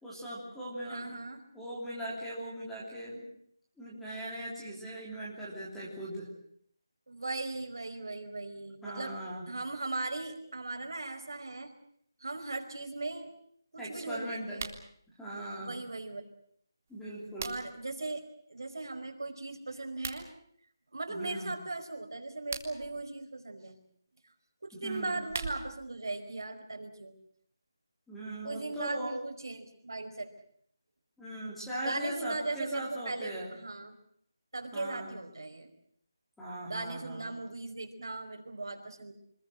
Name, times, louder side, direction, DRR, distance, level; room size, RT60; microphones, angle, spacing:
voice 1, 0.0-1.1 1.5-3.3 3.8-6.3 8.8-9.4 13.8-14.6 15.2-15.7 16.9-17.5 21.1-21.5 24.7-25.2 28.1-29.2 31.2-33.5 34.7-35.1 36.4-37.4, right 1 dB, ahead, -7 dB, 3.3 m, -39 dB
voice 2, 0.9-1.4 7.1-9.2 9.5-11.7 12.2-13.3 13.7-14.8 15.6-16.2 17.4-18.2 18.5-20.3 20.9-23.8 24.6-27.2 28.4-30.3 31.8-33.9 34.5-35.7 36.7-39.1, right 2 dB, 65° right, 5 dB, 4.9 m, -38 dB
sound 1, 14.5-14.9 16.9-17.9 19.9-20.2 22.3-22.9 24.9-25.9, right 5 dB, 30° right, 1.9 m, -41 dB
26.0 x 21.0 x 7.8 m, 0.65 s
figure-of-eight pair, 175°, 2 cm